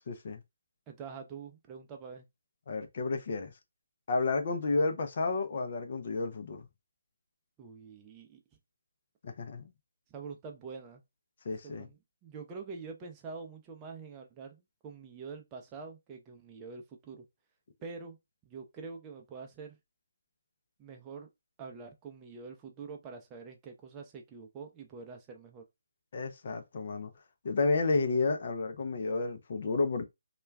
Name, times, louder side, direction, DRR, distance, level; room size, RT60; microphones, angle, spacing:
voice 1, 0.1-0.4 2.7-3.5 4.1-6.6 9.2-9.6 11.4-11.9 26.1-27.1 27.4-30.0, left 3 dB, 50° left, 0.5 m, -31 dB
voice 2, 0.9-2.3 7.6-8.4 10.1-11.0 11.6-17.2 17.8-18.2 18.5-19.8 20.8-21.3 21.6-25.6, right 5 dB, 20° right, 0.5 m, -45 dB
2.3 x 2.2 x 3.2 m
figure-of-eight pair, 150°, 0 cm